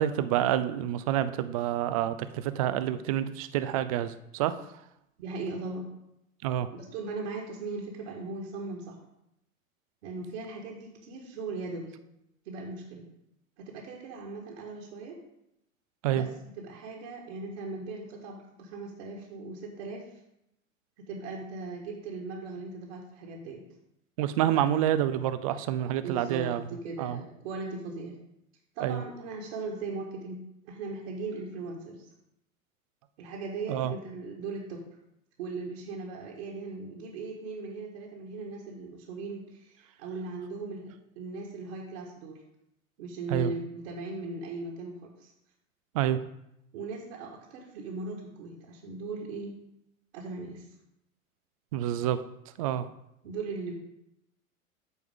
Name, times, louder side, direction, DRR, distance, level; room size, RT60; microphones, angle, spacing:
voice 1, 0.0-4.5 6.4-6.7 16.0-16.3 24.2-26.6 27.0-27.2 28.8-29.0 33.7-33.9 43.3-43.5 45.9-46.2 51.7-52.2 52.6-52.9, right 11 dB, 30° right, 12 dB, 0.4 m, -28 dB
voice 2, 5.2-5.8 6.7-9.0 10.0-11.9 12.4-13.1 13.6-15.2 16.1-16.3 16.6-20.0 21.1-23.6 24.5-24.7 26.0-28.2 28.7-32.1 33.2-34.8 35.4-42.4 43.0-45.3 46.7-49.6 50.1-50.7 53.2-53.7, right 3 dB, 50° right, -3 dB, 1.7 m, -38 dB
13.5 x 4.5 x 3.7 m, 0.82 s
figure-of-eight pair, 90°, 41 cm